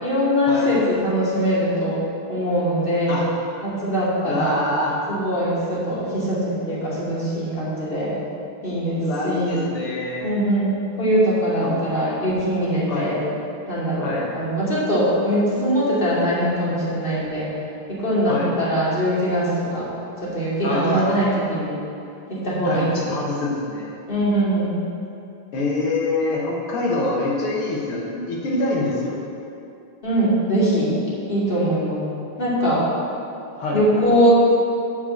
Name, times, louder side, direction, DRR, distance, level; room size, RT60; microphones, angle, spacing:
voice 1, 0.0-2.0 2.3-3.2 3.6-4.6 5.1-8.1 8.6-9.5 10.2-13.2 13.7-17.5 17.9-19.9 20.2-21.7 22.3-22.9 24.1-24.7 30.0-30.9 31.3-32.1 32.4-32.8 33.7-34.3, equal, 25° left, -9 dB, 2.8 m, -22 dB
voice 2, 4.3-5.0 9.0-10.4 11.6-11.8 12.9-13.1 14.0-14.3 18.3-18.5 20.6-21.1 22.6-23.9 25.5-29.2 33.5-33.8, left 2 dB, 85° left, -3 dB, 2.1 m, -25 dB
9.6 x 5.0 x 7.7 m, 2.7 s
omnidirectional pair, 2.4 m